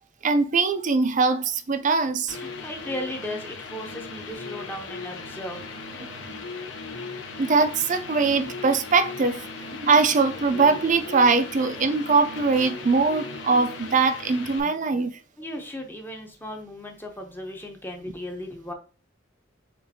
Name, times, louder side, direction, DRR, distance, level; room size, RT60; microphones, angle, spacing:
voice 1, 0.2-2.4 6.0-6.4 7.4-9.4 9.8-15.2, right 4 dB, 40° right, 0.5 m, -22 dB
sound 1, 2.3-14.6, left 3 dB, 70° left, 0.8 m, -37 dB
voice 2, 2.4-5.9 15.4-18.7, left 1 dB, 10° left, 0.7 m, -36 dB
6.7 x 2.5 x 2.7 m
head